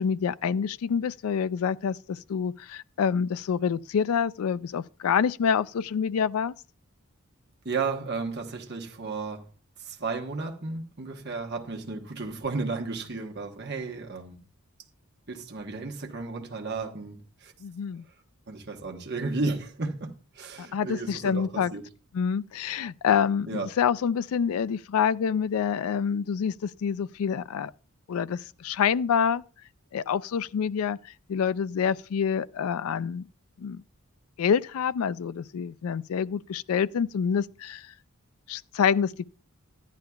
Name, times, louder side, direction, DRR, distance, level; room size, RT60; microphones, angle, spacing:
voice 1, 0.0-6.5 17.6-18.0 20.6-21.7 22.1-27.7 28.1-29.4 29.9-33.2 33.6-33.8 34.4-37.9 38.5-39.3, left 7 dB, 85° left, 0.4 m, -27 dB
voice 2, 7.6-9.5 9.8-14.4 15.3-17.5 18.5-21.9 23.5-23.7, right 3 dB, 50° right, 1.2 m, -33 dB
13.5 x 10.5 x 2.3 m
head